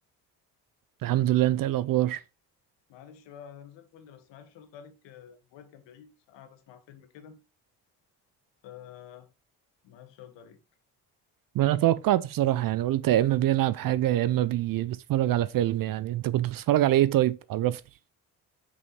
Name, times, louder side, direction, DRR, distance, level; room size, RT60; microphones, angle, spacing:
voice 1, 1.0-2.2 11.5-17.8, right 14 dB, 50° right, 0.4 m, -24 dB
voice 2, 2.9-7.4 8.6-9.3 9.8-10.6, left 9 dB, 75° left, 1.2 m, -49 dB
5.5 x 5.4 x 3.1 m
hypercardioid pair, 50°, 44 cm